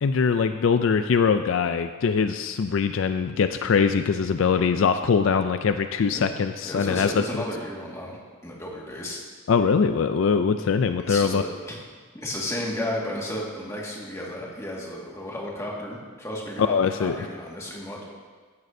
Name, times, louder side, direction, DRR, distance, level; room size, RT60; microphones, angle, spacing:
voice 1, 0.0-7.4 9.5-11.4 16.7-17.3, left 5 dB, 65° left, 9 dB, 0.4 m, -22 dB
voice 2, 6.6-8.2 8.4-9.2 11.1-11.8 12.1-18.0, left 1 dB, 15° left, -3 dB, 1.8 m, -33 dB
15.5 x 10.5 x 2.7 m, 1.5 s
head